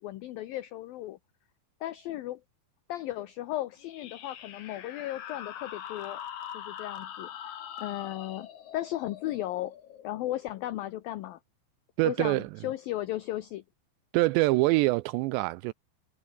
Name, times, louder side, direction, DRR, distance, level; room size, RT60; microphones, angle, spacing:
voice 1, 0.0-1.2 1.8-2.4 2.9-6.2 6.5-8.5 8.7-9.7 10.0-11.4 12.0-13.6, left 14 dB, 90° left, 2.0 m, -35 dB
sound 1, 3.8-11.0, left 10 dB, 55° left, 2.4 m, -43 dB
voice 2, 12.0-12.5 14.1-15.7, right 21 dB, 85° right, 2.6 m, -25 dB
omnidirectional pair, 5.4 m